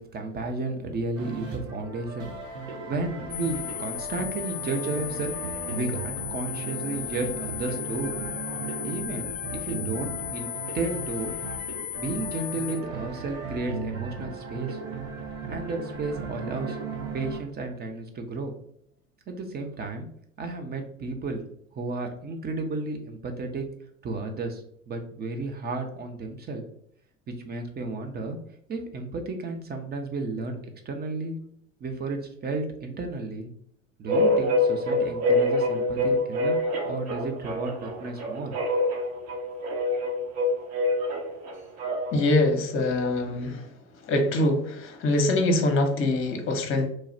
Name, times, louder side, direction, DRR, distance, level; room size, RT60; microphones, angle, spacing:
voice 1, 0.0-5.3 5.7-8.1 8.8-11.3 12.0-14.8 15.5-16.8 17.1-18.5 19.3-20.1 20.4-21.4 21.7-23.7 24.0-26.6 27.3-28.4 28.7-30.6 30.8-31.4 31.8-33.5 34.0-36.6 36.8-38.6, right 3 dB, 25° right, 5 dB, 0.7 m, -33 dB
sound 1, 1.2-17.4, right 4 dB, 70° right, 0.9 m, -37 dB
sound 2, 3.3-12.8, left 21 dB, 15° left, 0.4 m, -36 dB
sound 3, 34.1-42.3, left 1 dB, 40° right, 1.1 m, -26 dB
voice 2, 42.1-43.7 44.0-46.9, left 2 dB, 30° left, 5 dB, 0.9 m, -24 dB
3.1 x 2.3 x 4.3 m, 0.69 s
figure-of-eight pair, 75°, 40 cm